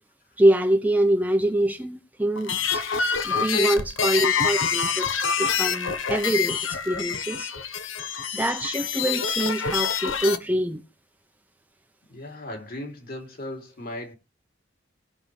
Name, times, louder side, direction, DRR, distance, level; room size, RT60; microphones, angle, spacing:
voice 1, 0.4-2.8 3.2-5.1 5.4-7.5 8.3-10.8, right 1 dB, 10° right, 0.7 m, -24 dB
sound 1, 2.4-10.4, left 6 dB, 80° left, 1.3 m, -26 dB
voice 2, 12.1-14.2, left 1 dB, 50° left, 3.2 m, -37 dB
19.0 x 6.5 x 3.3 m
head